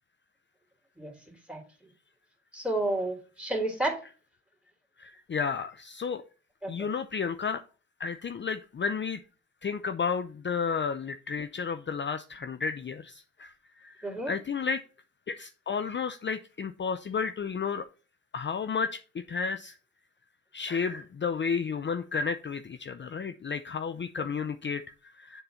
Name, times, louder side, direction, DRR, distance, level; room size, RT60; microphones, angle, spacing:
voice 1, 2.5-4.0 6.6-6.7 14.0-14.3, right 1 dB, 5° right, 3 dB, 3.1 m, -30 dB
voice 2, 5.0-6.2 6.7-7.6 8.0-9.2 9.6-14.8 15.3-17.8 18.3-19.7 20.5-25.4, left 5 dB, 35° left, 10 dB, 0.6 m, -32 dB
6.9 x 3.8 x 5.5 m, 0.36 s
cardioid pair, 65°, 31 cm